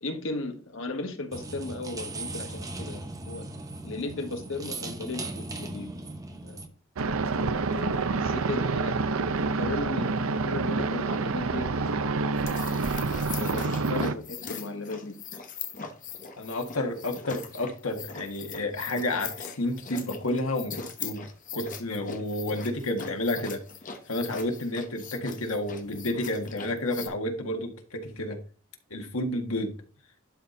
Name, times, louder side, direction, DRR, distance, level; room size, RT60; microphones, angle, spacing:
voice 1, 0.0-3.4 3.8-5.9 6.3-6.6 7.5-8.9 9.4-12.2 13.3-15.2, left 2 dB, 65° left, 1.5 m, -36 dB
sound 1, 1.3-6.7, right 2 dB, 15° right, 0.9 m, -38 dB
sound 2, 7.0-14.1, right 3 dB, 75° right, 0.6 m, -27 dB
sound 3, 12.3-27.1, left 6 dB, 40° left, 1.0 m, -41 dB
voice 2, 16.4-21.3 21.5-23.6 24.1-28.4 28.9-29.7, left 1 dB, 90° left, 1.7 m, -30 dB
11.5 x 4.3 x 3.9 m
head